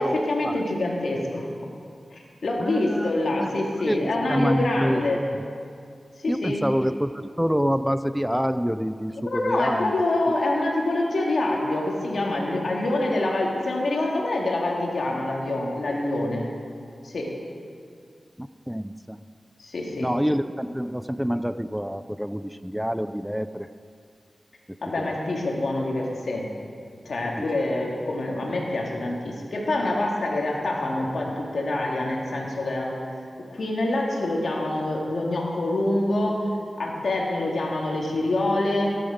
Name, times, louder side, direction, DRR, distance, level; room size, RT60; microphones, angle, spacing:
voice 1, 0.0-1.5 2.1-5.3 6.2-6.6 9.2-16.5 17.0-17.4 19.6-20.1 24.8-26.5 27.0-33.0 33.5-36.5 36.8-39.0, left 2 dB, 75° left, -1 dB, 2.4 m, -26 dB
voice 2, 2.6-3.5 3.8-5.2 6.3-9.9 18.4-19.2 20.0-23.7 25.0-25.1, equal, 5° right, 12 dB, 0.4 m, -27 dB
17.0 x 9.9 x 5.1 m, 2.3 s
cardioid pair, 55°, 0 cm